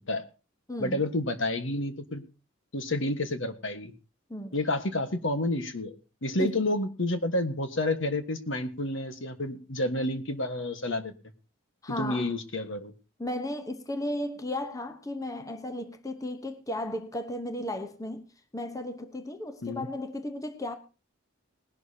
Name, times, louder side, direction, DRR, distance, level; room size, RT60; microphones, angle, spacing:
voice 1, 0.8-2.2 2.7-3.9 4.5-5.9 6.2-11.1 12.0-12.9 19.6-19.9, left 1 dB, 65° left, 1.4 m, -29 dB
voice 2, 11.8-12.3 13.2-18.2 18.5-20.8, left 1 dB, 15° left, 0.9 m, -35 dB
19.5 x 11.5 x 2.8 m
head